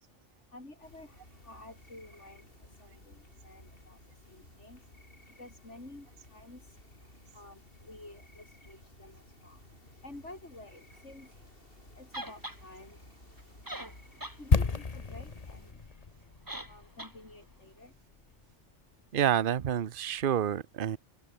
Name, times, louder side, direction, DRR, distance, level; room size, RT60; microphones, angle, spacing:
voice 1, 0.5-1.1 1.4-2.4 2.8-3.2 3.4-4.0 4.3-4.8 5.4-6.1 6.3-6.6 7.3-9.6 10.0-11.3 12.0-13.0 14.4-15.7 16.7-17.9, left 2 dB, 75° left, 5.9 m, -50 dB
sound 1, 0.8-15.7, left 1 dB, 50° left, 6.2 m, -56 dB
sound 2, 12.1-12.6 13.4-13.5 13.7-14.4 14.8-14.9 16.5-16.7 17.0-17.1, right 1 dB, 15° right, 2.7 m, -40 dB
sound 3, 14.5-18.4 18.7-18.8, left 4 dB, 35° left, 1.2 m, -31 dB
voice 2, 19.1-21.0, right 9 dB, 50° right, 0.9 m, -28 dB
omnidirectional pair, 1.2 m